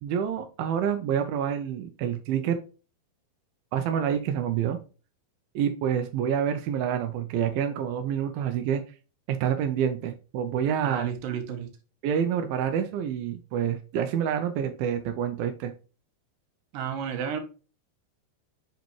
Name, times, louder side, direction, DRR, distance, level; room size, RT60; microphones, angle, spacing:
voice 1, 0.0-2.6 3.7-4.8 5.6-8.8 9.3-11.1 12.0-15.7, right 8 dB, 85° right, 2.1 m, -27 dB
voice 2, 10.8-11.7 16.7-17.4, right 8 dB, 65° right, 2.3 m, -32 dB
6.7 x 5.3 x 3.0 m
omnidirectional pair, 5.3 m